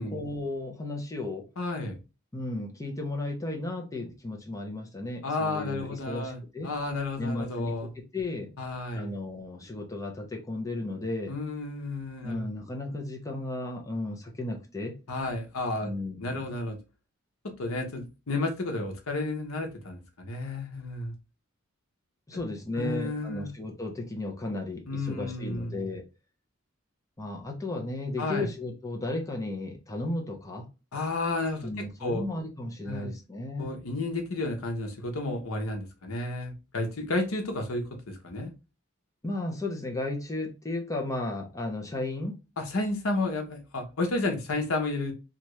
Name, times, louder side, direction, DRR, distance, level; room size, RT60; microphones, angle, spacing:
voice 1, 0.1-1.5 2.3-6.7 7.2-8.5 8.9-11.3 12.2-14.9 15.8-16.5 22.3-26.1 27.2-30.7 31.6-33.8 39.2-42.4, left 2 dB, 15° left, 0.6 m, -34 dB
voice 2, 1.6-2.0 5.2-7.9 8.6-9.1 11.3-12.5 15.1-15.9 16.2-16.8 17.6-21.1 22.7-23.5 24.9-25.8 28.2-28.5 30.9-32.2 32.9-33.1 33.6-38.5 42.6-45.1, left 2 dB, 85° left, 0.9 m, -32 dB
2.9 x 2.5 x 3.1 m
head